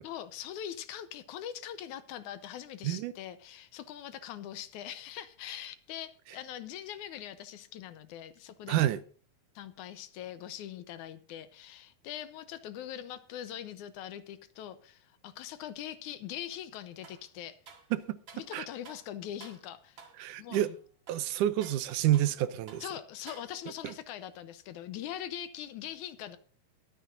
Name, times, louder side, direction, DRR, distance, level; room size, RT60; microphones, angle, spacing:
voice 1, 0.0-8.9 9.6-17.6 18.3-20.1 20.4-20.8 22.8-26.4, left 11 dB, 75° left, 2.2 m, -42 dB
voice 2, 8.7-9.0 17.9-18.2 18.5-18.7 20.2-20.7 21.1-22.8 23.8-23.9, right 13 dB, 80° right, 2.2 m, -28 dB
sound 1, 17.0-17.3 17.7-18.5 18.8-19.1 19.4-19.7 20.0-20.2 20.5-20.8 21.1-22.4 22.7-22.9 23.3-23.8, right 5 dB, 40° right, 2.2 m, -52 dB
22.0 x 9.7 x 2.6 m
omnidirectional pair, 3.7 m